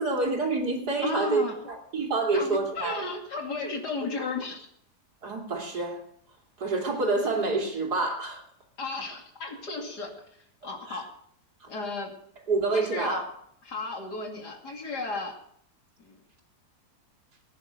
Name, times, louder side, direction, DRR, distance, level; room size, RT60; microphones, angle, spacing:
voice 1, 0.0-3.1 5.2-6.0 6.6-8.5 10.9-11.0 11.6-11.7 12.5-13.3, right 3 dB, 75° right, 1 dB, 3.3 m, -28 dB
voice 2, 1.0-1.6 2.3-4.7 8.8-10.1 10.6-11.1 11.7-12.1 12.7-13.2 13.7-15.3 16.0-16.2, left 3 dB, 80° left, 2 dB, 3.1 m, -34 dB
20.0 x 10.0 x 5.1 m, 0.68 s
omnidirectional pair, 1.7 m